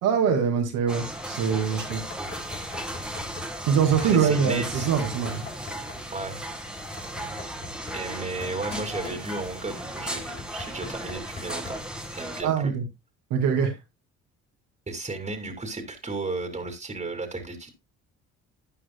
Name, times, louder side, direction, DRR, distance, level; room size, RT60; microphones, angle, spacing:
voice 1, 0.0-2.0 3.7-5.4 12.4-12.8 13.3-13.7, right 7 dB, 85° right, 2.4 m, -23 dB
sound 1, 0.9-12.4, right 1 dB, 5° right, 1.9 m, -36 dB
Knock, 1.9-3.6 4.8-6.1 6.8-9.7 10.2-12.0, left 3 dB, 35° left, 4.5 m, -43 dB
voice 2, 3.9-4.9 6.1-6.4 7.9-11.8 12.1-12.7 14.9-17.7, right 3 dB, 20° right, 2.4 m, -34 dB
12.5 x 9.0 x 2.2 m
supercardioid pair, 75°, 30 cm